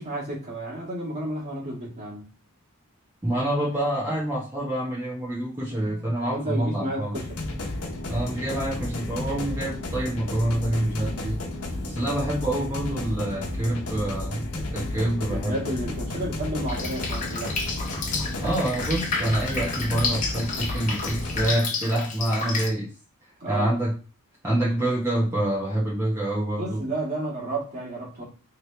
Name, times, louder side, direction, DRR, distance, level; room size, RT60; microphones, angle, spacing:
voice 1, 0.0-2.3 5.8-7.4 15.3-17.5 23.4-23.8 26.6-28.2, right 1 dB, 35° right, -5 dB, 1.7 m, -32 dB
voice 2, 3.2-7.1 8.1-11.4 11.9-15.5 15.8-15.9 18.4-22.9 23.5-23.9 24.4-26.8, right 1 dB, 15° right, -7 dB, 1.0 m, -27 dB
sound 1, 7.1-21.5, left 1 dB, 85° left, 0.9 m, -32 dB
Drip, 16.7-22.7, left 4 dB, 35° left, 0.8 m, -31 dB
3.3 x 2.9 x 3.2 m, 0.35 s
head